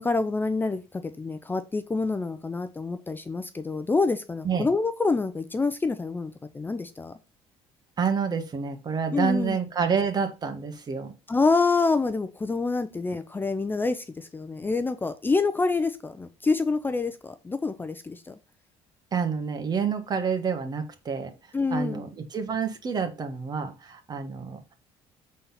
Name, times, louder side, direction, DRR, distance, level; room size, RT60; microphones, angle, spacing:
voice 1, 0.0-7.1 9.1-9.6 11.3-18.3 21.5-22.0, left 3 dB, 20° left, 10 dB, 0.7 m, -27 dB
voice 2, 8.0-11.1 19.1-21.3 21.7-24.7, right 6 dB, 35° right, 7 dB, 1.7 m, -28 dB
7.4 x 4.2 x 5.7 m, 0.29 s
cardioid pair, 100°, 11 cm